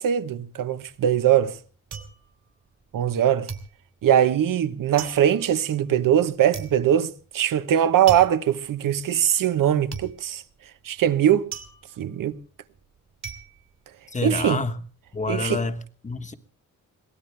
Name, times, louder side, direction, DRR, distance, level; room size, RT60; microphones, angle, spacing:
voice 1, 0.0-1.6 2.9-3.5 4.0-10.4 10.8-11.5 12.0-12.4 14.2-14.6 15.3-15.6, right 10 dB, 75° right, 1.0 m, -21 dB
sound 1, 1.6-3.2 3.5-14.6 14.9-15.5, right 6 dB, 50° right, 2.7 m, -40 dB
voice 2, 14.1-14.8 15.1-16.3, left 3 dB, 20° left, 1.2 m, -28 dB
23.0 x 17.5 x 3.3 m
wide cardioid pair, 130°, 33 cm